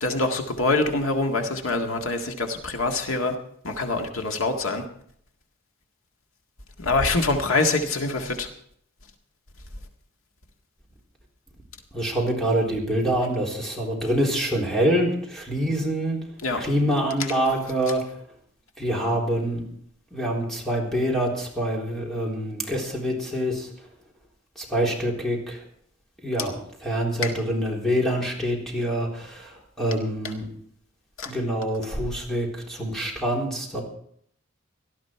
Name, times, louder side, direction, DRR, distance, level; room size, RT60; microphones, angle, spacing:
voice 1, 0.0-3.3 3.6-4.8 6.8-8.5 16.4-16.6 27.2-27.3 31.2-31.3, left 3 dB, 85° left, 4 dB, 1.9 m, -25 dB
voice 2, 11.9-16.2 16.6-18.0 18.8-19.7 20.1-23.7 24.6-25.6 26.2-26.5 26.8-30.5 31.3-33.8, right 1 dB, ahead, -2 dB, 3.8 m, -25 dB
18.5 x 13.0 x 4.6 m, 0.64 s
head